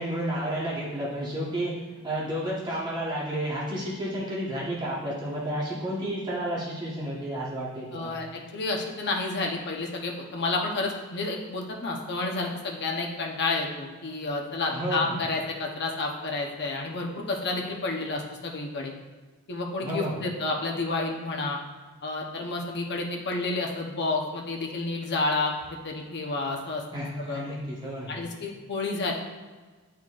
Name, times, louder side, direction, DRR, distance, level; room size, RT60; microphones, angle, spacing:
voice 1, 0.0-1.7 2.0-8.1 14.7-15.2 19.8-20.2 26.9-28.2, right 1 dB, 20° right, -7 dB, 1.2 m, -31 dB
voice 2, 7.9-18.9 19.5-21.6 22.0-25.5 25.8-26.8 27.2-27.4 28.1-29.1, left 3 dB, 50° left, 0 dB, 0.9 m, -30 dB
10.0 x 4.3 x 2.5 m, 1.4 s
head